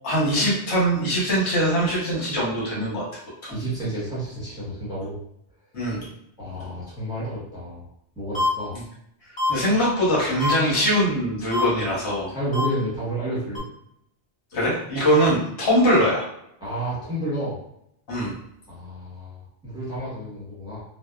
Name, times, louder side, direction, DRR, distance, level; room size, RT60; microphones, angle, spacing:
voice 1, 0.0-3.0 3.4-3.5 5.7-6.1 9.5-12.3 14.5-16.3 18.1-18.3, equal, 75° left, -6 dB, 1.2 m, -22 dB
voice 2, 3.5-5.2 6.4-7.9 8.2-8.8 12.1-13.6 16.6-17.6 18.7-20.8, right 1 dB, 5° right, -9 dB, 1.0 m, -30 dB
sound 1, 8.3-8.5 9.4-9.5 10.4-10.5 11.5-11.6 12.5-12.7 13.5-13.6, left 2 dB, 30° left, 0.7 m, -24 dB
2.7 x 2.0 x 2.3 m, 0.74 s
omnidirectional pair, 1.2 m